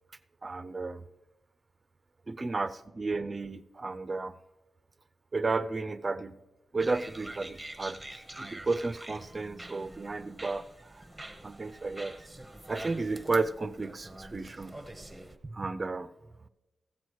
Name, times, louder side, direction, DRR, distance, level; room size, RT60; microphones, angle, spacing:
voice 1, 0.4-1.0 2.3-4.4 5.3-6.4 6.7-8.0 8.4-10.6 11.4-12.1 12.7-14.8 15.5-16.1, right 3 dB, 30° right, 14 dB, 0.5 m, -33 dB
sound 1, 6.8-15.4, right 1 dB, 10° right, 0.8 m, -46 dB
15.0 x 7.8 x 4.6 m, 1.0 s
wide cardioid pair, 130°, 0 cm